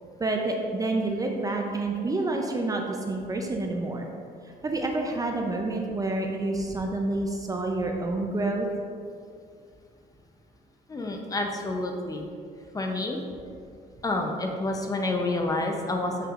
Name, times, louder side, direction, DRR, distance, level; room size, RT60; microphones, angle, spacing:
voice 1, 0.2-4.1 4.6-8.7, right 2 dB, 20° right, 2 dB, 0.5 m, -28 dB
voice 2, 10.9-12.3 12.7-13.2 14.0-16.3, left 2 dB, 20° left, 2 dB, 0.6 m, -29 dB
7.0 x 5.7 x 2.5 m, 2.3 s
cardioid pair, 110°, 17 cm